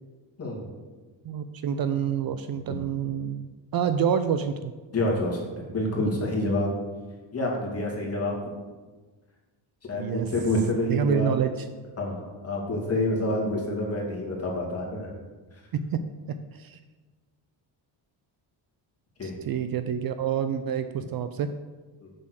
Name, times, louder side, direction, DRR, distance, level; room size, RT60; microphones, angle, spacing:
voice 1, 1.2-4.7 10.0-10.3 10.9-11.7 15.7-16.0 16.5-16.8 19.2-21.5, right 8 dB, 50° right, 10 dB, 0.5 m, -27 dB
voice 2, 4.9-6.7 7.3-8.4 9.9-11.3 12.0-15.1 19.2-19.4, left 1 dB, 30° left, -2 dB, 2.4 m, -27 dB
7.1 x 6.7 x 6.4 m, 1.3 s
cardioid pair, 130°, 47 cm